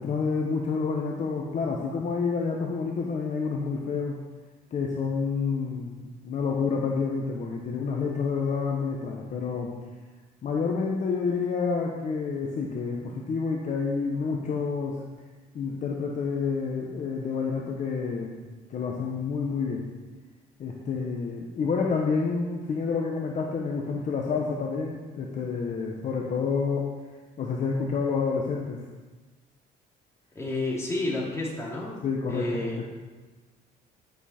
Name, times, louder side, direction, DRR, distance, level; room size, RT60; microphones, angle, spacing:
voice 1, 0.0-4.2 4.7-9.7 10.4-15.0 15.5-18.4 18.7-19.8 20.6-26.9 27.4-28.8 32.0-32.5, left 5 dB, 45° left, 0 dB, 1.2 m, -29 dB
voice 2, 30.3-32.0 32.3-32.8, left 2 dB, 15° left, -4 dB, 3.1 m, -30 dB
10.5 x 7.5 x 4.4 m, 1.3 s
cardioid pair, 110°, 17 cm